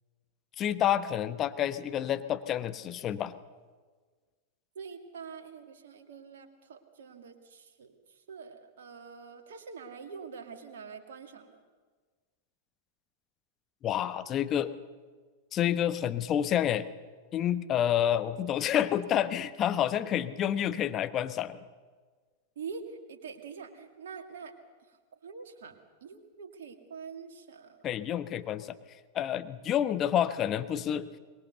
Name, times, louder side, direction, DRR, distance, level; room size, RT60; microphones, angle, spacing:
voice 1, 0.6-3.4 13.8-14.7 15.5-16.9 17.3-21.6 27.8-28.8 29.1-31.1, left 10 dB, 30° left, 11 dB, 1.1 m, -29 dB
voice 2, 4.7-11.6 22.6-24.5 24.9-27.9, right 5 dB, 60° right, 5 dB, 2.3 m, -45 dB
24.0 x 21.0 x 6.9 m, 1.5 s
figure-of-eight pair, 90°, 0 cm